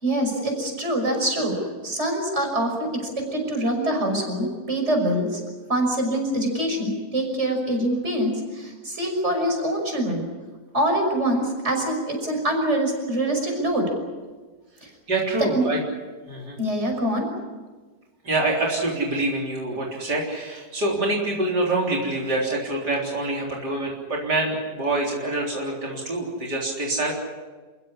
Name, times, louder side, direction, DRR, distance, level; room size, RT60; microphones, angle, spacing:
voice 1, 0.0-5.4 5.7-10.2 10.7-13.9 14.8-14.9 15.5-15.6 16.6-17.3, right 1 dB, 40° right, 2 dB, 6.3 m, -24 dB
voice 2, 15.1-15.8 16.3-16.6 18.2-27.1, right 2 dB, 80° right, -3 dB, 4.4 m, -26 dB
28.5 x 16.0 x 10.0 m, 1.3 s
omnidirectional pair, 1.8 m